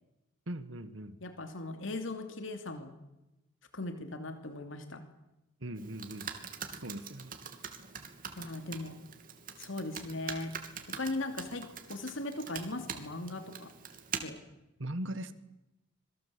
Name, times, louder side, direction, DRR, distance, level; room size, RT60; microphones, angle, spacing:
voice 1, 0.5-1.2 5.6-6.3 6.8-7.3 14.8-15.3, right 1 dB, 70° right, 11 dB, 1.7 m, -39 dB
voice 2, 1.2-2.9 3.7-5.1 8.4-9.0 9.6-10.6 11.0-13.7 14.2-14.4, left 2 dB, 70° left, 7 dB, 2.7 m, -38 dB
Computer keyboard, 5.8-14.2, right 7 dB, 45° right, 2.9 m, -44 dB
26.5 x 22.0 x 8.4 m, 0.94 s
head